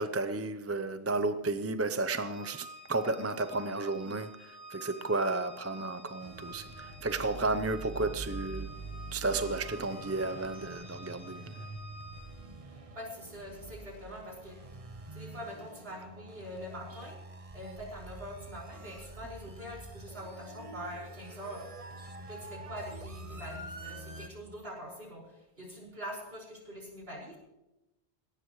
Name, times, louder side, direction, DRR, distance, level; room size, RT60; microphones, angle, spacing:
voice 1, 0.0-8.7 9.1-11.5, right 3 dB, 15° right, 0.5 m, -33 dB
Organ, 2.2-12.6, equal, 10° left, 4.2 m, -49 dB
sound 1, 6.2-24.3, right 2 dB, 35° right, 1.2 m, -46 dB
voice 2, 12.9-14.6 15.1-17.2 17.5-21.7 22.3-27.4, equal, 65° right, 5.6 m, -44 dB
20.0 x 17.5 x 3.1 m
omnidirectional pair, 1.1 m